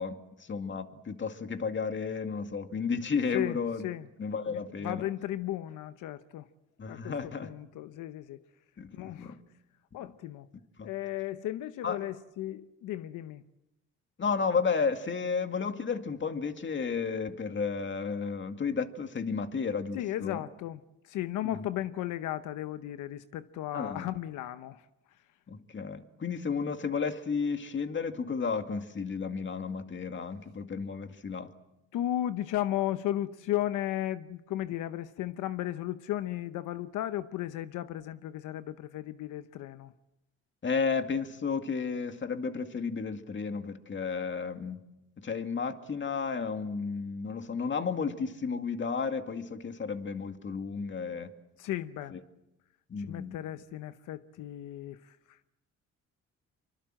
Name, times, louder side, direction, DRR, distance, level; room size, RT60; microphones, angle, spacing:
voice 1, 0.0-3.9 4.2-5.0 6.8-7.5 8.8-9.3 10.0-10.1 10.8-10.9 11.8-12.0 14.2-20.4 21.4-21.7 23.7-24.1 25.5-31.5 40.6-44.8 45.2-51.3 52.1-52.2 52.9-53.4, left 5 dB, 40° left, 2.2 m, -33 dB
voice 2, 3.3-4.1 4.5-6.5 6.9-8.4 8.9-9.4 9.9-10.5 10.8-13.4 19.9-24.9 31.9-39.9 51.6-52.2 53.0-55.5, left 13 dB, 85° left, 0.9 m, -35 dB
25.0 x 24.0 x 7.7 m
cardioid pair, 90°, 30 cm